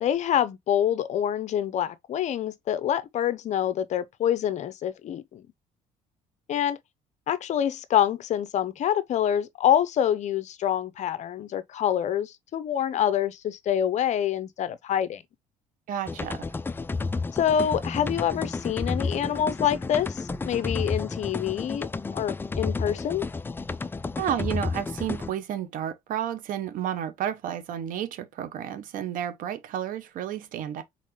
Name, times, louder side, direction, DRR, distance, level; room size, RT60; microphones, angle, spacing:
voice 1, 0.0-5.4 6.5-6.8 7.3-15.2 17.3-21.9 22.1-23.3, left 10 dB, 55° left, 0.7 m, -26 dB
voice 2, 15.9-16.4 24.2-30.8, right 10 dB, 70° right, 1.1 m, -31 dB
sound 1, 16.1-25.3, left 3 dB, 15° left, 0.4 m, -31 dB
4.1 x 4.0 x 3.0 m
cardioid pair, 105°, 15 cm